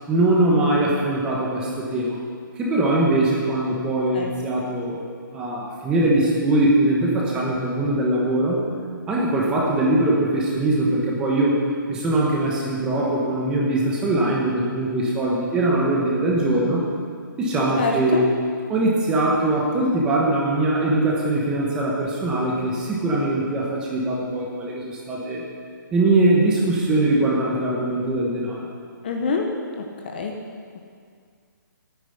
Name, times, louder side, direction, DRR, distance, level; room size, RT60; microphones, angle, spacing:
voice 1, 0.1-2.2 2.6-5.0 5.3-8.7 9.1-11.6 11.9-16.8 17.4-18.3 18.7-25.4 25.9-28.6, right 1 dB, 5° right, -3 dB, 1.2 m, -21 dB
voice 2, 17.8-18.2 29.0-29.5 29.8-30.3, left 4 dB, 30° left, 2 dB, 0.9 m, -26 dB
9.4 x 9.2 x 9.8 m, 2.1 s
hypercardioid pair, 175°, 11 cm